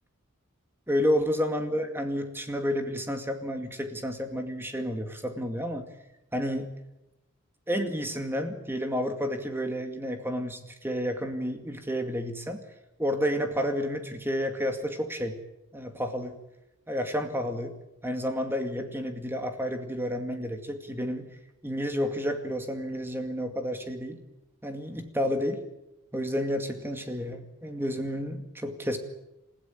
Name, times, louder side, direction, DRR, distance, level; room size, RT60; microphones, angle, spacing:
voice 1, 0.9-5.9 6.3-6.7 7.7-12.6 13.0-15.4 15.7-16.4 16.9-17.7 18.0-21.3 21.6-24.2 24.6-25.6 26.1-29.0, equal, 10° right, 5 dB, 2.3 m, -30 dB
29.0 x 16.0 x 9.0 m, 0.93 s
head